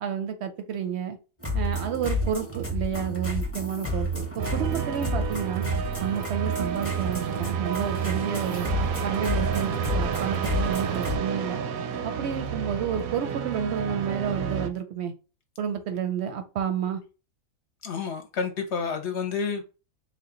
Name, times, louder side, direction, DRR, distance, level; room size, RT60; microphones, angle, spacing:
voice 1, 0.0-1.2 1.5-5.7 6.0-8.7 9.0-11.6 12.0-15.1 15.6-17.0, right 8 dB, 65° right, 0.7 m, -30 dB
sound 1, 1.4-11.2, right 1 dB, 15° left, 0.7 m, -30 dB
sound 2, 4.4-14.7, right 7 dB, 85° right, 1.0 m, -31 dB
voice 2, 17.8-19.6, left 5 dB, 60° left, 0.9 m, -29 dB
3.7 x 2.3 x 3.7 m
omnidirectional pair, 1.4 m